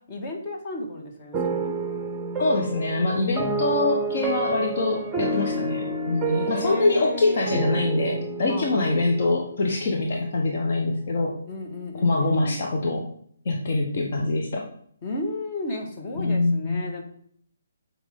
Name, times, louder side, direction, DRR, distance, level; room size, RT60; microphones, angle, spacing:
voice 1, 0.1-1.7 6.3-7.5 8.5-9.1 11.5-12.6 15.0-17.0, left 2 dB, 30° left, 1 dB, 1.7 m, -34 dB
sound 1, 1.3-10.5, right 3 dB, 10° right, 0.9 m, -30 dB
voice 2, 2.4-11.4 12.0-13.1 13.4-14.7 16.2-17.0, left 2 dB, 50° left, 0 dB, 1.2 m, -24 dB
8.0 x 5.0 x 3.8 m, 0.63 s
figure-of-eight pair, 140°, 0 cm